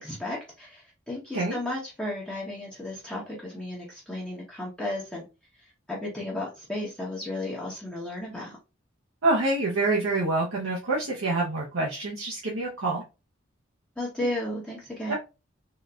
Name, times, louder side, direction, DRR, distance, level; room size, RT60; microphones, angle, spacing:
voice 1, 0.0-5.2 5.9-8.6 14.0-15.1, left 1 dB, 5° left, -6 dB, 0.8 m, -34 dB
voice 2, 9.2-13.0 15.1-15.2, right 2 dB, 80° right, -4 dB, 0.8 m, -26 dB
3.8 x 2.5 x 2.2 m, 0.28 s
head